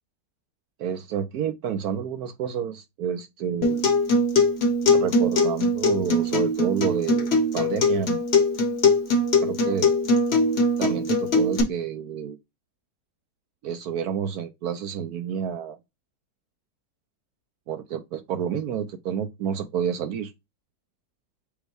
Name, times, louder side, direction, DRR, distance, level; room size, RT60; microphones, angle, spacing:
voice 1, 0.8-3.8 4.9-8.2 9.4-9.9 10.8-12.4 13.6-15.8 17.7-20.3, right 8 dB, 70° right, 1.0 m, -29 dB
Acoustic guitar, 3.6-11.6, left 2 dB, 45° left, 1.2 m, -21 dB
5.3 x 2.2 x 4.6 m
omnidirectional pair, 1.8 m